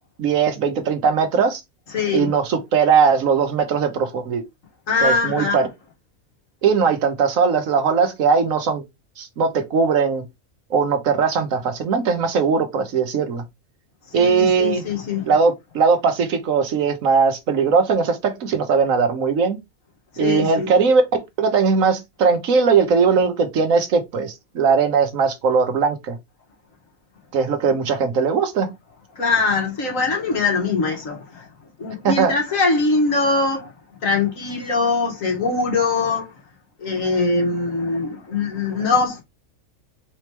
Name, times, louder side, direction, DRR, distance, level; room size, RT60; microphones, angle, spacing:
voice 1, 0.2-1.6 2.1-4.4 5.0-5.7 6.6-8.8 9.2-10.2 10.7-13.4 14.1-14.8 15.2-19.6 20.2-21.0 21.4-26.2 27.3-28.7 32.0-32.3, right 5 dB, 75° right, 1.3 m, -19 dB
voice 2, 1.9-2.3 4.9-5.6 14.1-15.3 20.1-20.7 29.2-31.5 31.8-33.7 34.0-36.3 36.8-39.2, left 3 dB, 70° left, 2.0 m, -22 dB
4.2 x 3.1 x 3.3 m
omnidirectional pair, 1.4 m